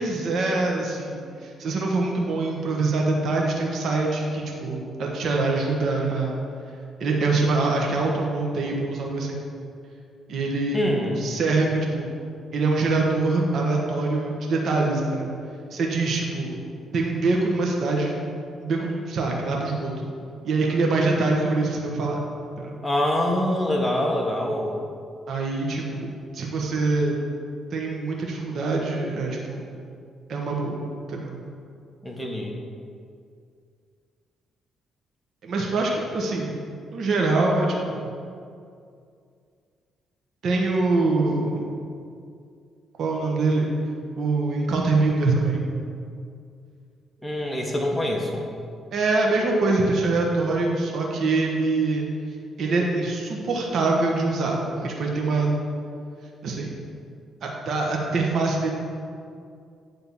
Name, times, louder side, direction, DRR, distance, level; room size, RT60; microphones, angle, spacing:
voice 1, 0.0-6.4 7.0-9.4 10.3-10.8 11.2-12.1 12.5-15.3 15.7-16.6 16.9-18.1 18.6-19.9 20.4-22.2 22.6-22.8 25.3-27.2 27.7-29.7 30.3-31.3 35.4-36.6 36.9-38.1 40.4-41.7 43.0-43.7 44.2-45.6 48.9-52.1 52.6-55.5 56.4-56.8 57.4-58.7, right 3 dB, 60° right, -1 dB, 1.3 m, -24 dB
voice 2, 10.7-11.2 22.8-24.8 32.0-32.5 47.2-48.4, left 1 dB, 5° left, 0 dB, 1.4 m, -25 dB
9.5 x 3.8 x 7.0 m, 2.3 s
cardioid pair, 90°, 0 cm